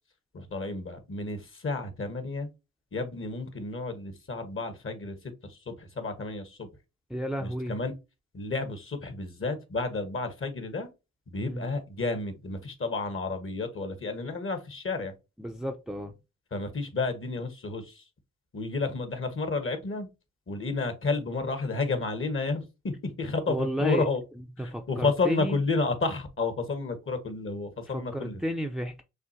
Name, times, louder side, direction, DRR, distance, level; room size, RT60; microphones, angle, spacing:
voice 1, 0.3-2.5 2.9-6.7 7.4-7.9 8.3-10.9 11.3-15.1 16.5-18.0 18.5-20.1 20.5-24.2 24.6-28.4, left 3 dB, 40° left, 1.5 m, -31 dB
voice 2, 7.1-7.7 11.4-11.7 15.4-16.1 23.5-24.0 24.6-25.6 27.9-29.0, right 1 dB, ahead, 0.6 m, -32 dB
6.5 x 2.4 x 2.7 m
supercardioid pair, 50°, 32 cm